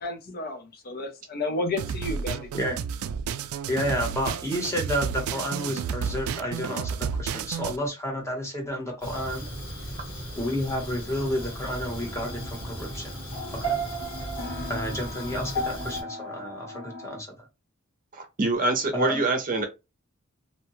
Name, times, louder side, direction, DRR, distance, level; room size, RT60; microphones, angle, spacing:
voice 1, 0.0-2.5, left 2 dB, 45° left, 0.6 m, -32 dB
sound 1, 1.8-7.8, right 7 dB, 85° right, 0.3 m, -31 dB
voice 2, 3.7-9.5 10.3-13.2 13.5-13.8 14.7-17.3 18.9-19.2, equal, 15° left, 0.9 m, -31 dB
Fire, 9.0-16.0, equal, 70° left, 1.4 m, -37 dB
sound 2, 11.2-17.2, right 1 dB, 90° left, 1.4 m, -36 dB
voice 3, 18.1-19.6, right 2 dB, 40° right, 0.6 m, -25 dB
2.7 x 2.2 x 2.9 m
head